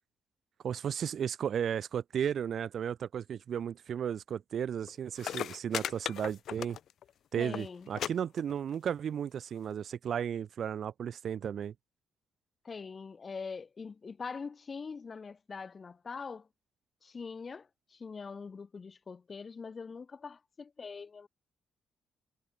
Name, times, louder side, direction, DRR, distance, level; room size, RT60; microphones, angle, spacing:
voice 1, 0.6-6.8 7.3-11.7, right 8 dB, 60° right, 5.7 m, -34 dB
sound 1, 4.9-5.0 5.2-7.1 7.4-7.6 8.0-8.1 8.4-8.9 9.7-9.8, left 10 dB, 65° left, 6.4 m, -37 dB
voice 2, 7.4-7.9 12.6-16.5 17.0-21.3, left 5 dB, 35° left, 4.1 m, -43 dB
cardioid pair, 90°, 0 cm